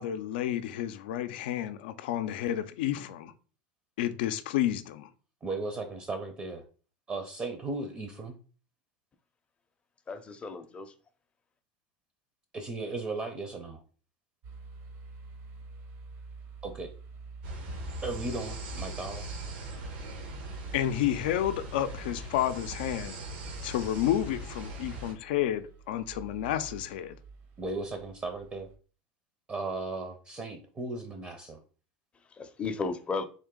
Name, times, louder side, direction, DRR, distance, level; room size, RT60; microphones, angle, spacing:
voice 1, 0.0-3.3 4.0-5.1 20.7-23.2 23.6-27.2, left 11 dB, 80° left, 0.4 m, -30 dB
voice 2, 5.4-6.6 7.1-8.3 12.5-13.8 16.6-16.9 18.0-19.3 27.6-28.7 29.5-31.6, right 3 dB, 25° right, 0.6 m, -36 dB
voice 3, 10.1-10.9 32.2-33.2, left 4 dB, 20° left, 0.5 m, -35 dB
sound 1, 14.4-28.8, right 5 dB, 50° right, 0.9 m, -48 dB
sound 2, 17.4-25.1, right 1 dB, 75° right, 1.1 m, -40 dB
3.7 x 2.6 x 3.7 m
supercardioid pair, 110°, 5 cm